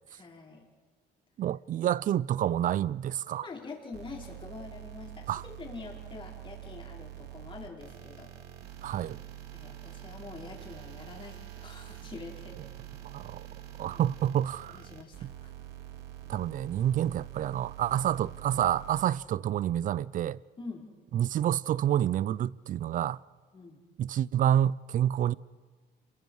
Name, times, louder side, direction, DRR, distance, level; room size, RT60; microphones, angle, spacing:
voice 1, 0.1-0.6 3.3-8.3 9.5-12.6 13.9-14.0 14.7-15.5 20.6-20.9 23.5-23.8, left 4 dB, 30° left, 5.1 m, -45 dB
voice 2, 1.4-3.5 5.3-5.4 8.8-9.2 13.0-13.4 13.8-14.8 15.2-15.3 16.3-20.4 21.1-23.2 24.0-25.3, right 11 dB, 50° right, 0.5 m, -28 dB
sound 1, 3.9-19.0, right 12 dB, 80° right, 2.5 m, -46 dB
28.0 x 23.0 x 4.9 m
cardioid pair, 110°, 17 cm